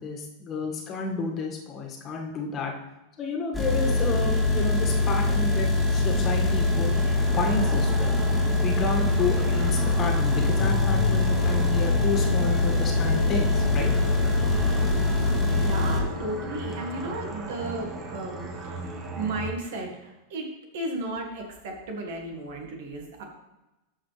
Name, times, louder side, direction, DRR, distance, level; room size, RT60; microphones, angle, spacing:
voice 1, 0.0-2.7 3.2-6.9 7.3-8.1 8.6-13.9, left 3 dB, 35° left, 0 dB, 1.9 m, -31 dB
sound 1, 3.5-16.0, left 2 dB, ahead, 2.4 m, -23 dB
sound 2, 6.0-19.5, right 3 dB, 30° right, 1.6 m, -37 dB
sound 3, 10.6-16.7, left 7 dB, 75° left, 0.4 m, -32 dB
voice 2, 15.5-18.8 19.2-20.5 20.7-23.2, right 2 dB, 65° right, 2 dB, 1.9 m, -34 dB
13.5 x 5.1 x 3.4 m, 0.99 s
hypercardioid pair, 95°, 0 cm